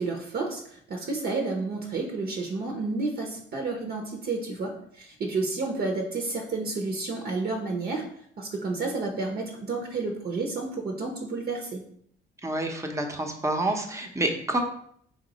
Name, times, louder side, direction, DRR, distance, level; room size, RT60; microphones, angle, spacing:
voice 1, 0.0-8.0 8.4-11.8, right 3 dB, 50° right, 1 dB, 0.8 m, -31 dB
voice 2, 12.4-14.6, right 1 dB, 15° right, 3 dB, 0.8 m, -28 dB
4.1 x 2.9 x 4.0 m, 0.66 s
cardioid pair, 90°, 20 cm